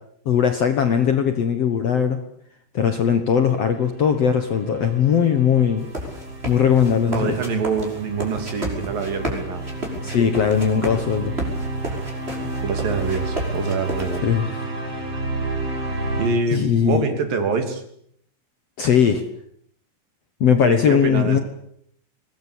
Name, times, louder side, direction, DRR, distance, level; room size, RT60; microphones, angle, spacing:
voice 1, 0.3-2.2 2.7-5.9 6.5-7.4 10.0-11.3 14.2-14.6 16.5-17.1 18.8-19.2 20.4-21.4, left 8 dB, 55° left, 8 dB, 1.9 m, -19 dB
sound 1, 3.4-16.3, right 2 dB, 35° right, 5.3 m, -31 dB
sound 2, 5.8-14.2, right 1 dB, 15° right, 5.9 m, -32 dB
voice 2, 7.1-9.6 12.6-14.2 16.2-17.8 20.6-21.4, right 4 dB, 65° right, 6 dB, 4.6 m, -25 dB
23.0 x 20.0 x 8.5 m, 0.69 s
omnidirectional pair, 4.4 m